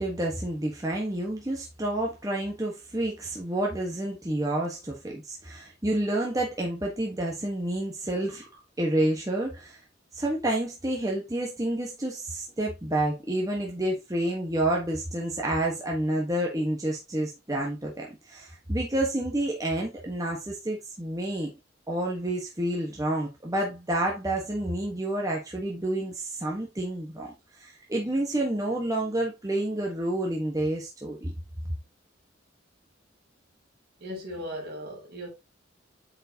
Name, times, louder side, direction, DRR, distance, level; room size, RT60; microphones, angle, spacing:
voice 1, 0.0-9.8 10.1-21.5 21.9-27.3 27.6-31.3, right 1 dB, 20° right, 1.3 m, -29 dB
voice 2, 34.0-35.3, equal, 55° right, 3.4 m, -37 dB
8.7 x 4.8 x 2.8 m
head